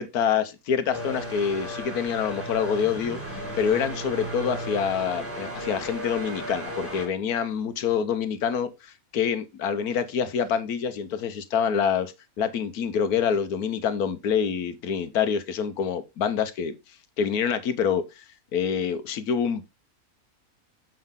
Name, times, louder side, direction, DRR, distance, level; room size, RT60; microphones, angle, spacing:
voice 1, 0.0-3.2 3.6-16.7 17.2-18.2 18.5-19.6, left 7 dB, 80° left, 1.4 m, -26 dB
sound 1, 0.9-7.1, equal, 10° right, 2.3 m, -35 dB
7.7 x 5.4 x 3.7 m
omnidirectional pair, 1.6 m